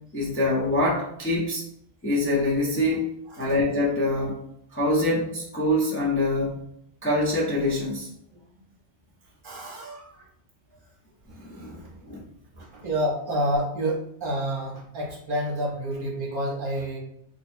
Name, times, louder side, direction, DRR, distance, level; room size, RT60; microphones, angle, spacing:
voice 1, 0.1-1.6 2.0-3.1 3.4-4.4 4.7-6.6 7.0-8.1 11.3-11.8 12.1-12.2, left 1 dB, 15° left, -6 dB, 0.5 m, -25 dB
voice 2, 9.4-10.3 11.3-12.0 12.5-17.0, right 1 dB, 50° right, -2 dB, 0.9 m, -29 dB
3.0 x 2.2 x 4.2 m, 0.73 s
omnidirectional pair, 1.2 m